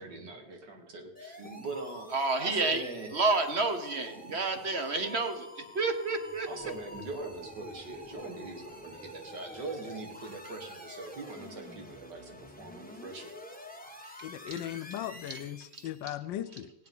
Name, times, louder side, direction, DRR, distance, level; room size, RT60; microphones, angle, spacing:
voice 1, 0.0-2.1 2.4-3.1 6.5-13.3, right 3 dB, 70° right, 2.3 m, -42 dB
sound 1, 1.1-16.0, left 1 dB, 5° left, 0.9 m, -48 dB
voice 2, 2.1-2.8 3.1-6.5 14.0-14.1 14.5-14.6 15.3-15.4 15.7-16.1, right 3 dB, 45° right, 1.0 m, -30 dB
voice 3, 14.2-16.7, left 12 dB, 80° left, 1.3 m, -38 dB
16.5 x 9.7 x 5.5 m
omnidirectional pair, 2.0 m